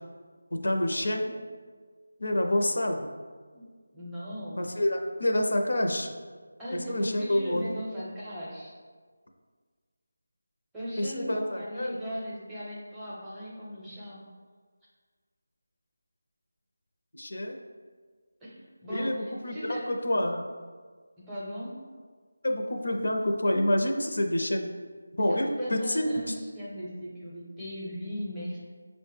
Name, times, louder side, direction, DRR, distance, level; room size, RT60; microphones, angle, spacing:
voice 1, 0.5-1.4 2.2-3.0 4.6-6.1 6.7-7.7 11.0-12.0 17.1-17.6 18.9-20.5 22.4-24.7 25.2-26.3, left 1 dB, 80° left, 3 dB, 0.5 m, -28 dB
voice 2, 3.9-4.6 6.6-8.8 10.7-14.2 18.4-19.2 19.5-19.9 21.2-21.8 25.2-28.6, equal, 5° right, -9 dB, 0.6 m, -38 dB
6.1 x 2.1 x 3.2 m, 1.6 s
figure-of-eight pair, 175°, 0 cm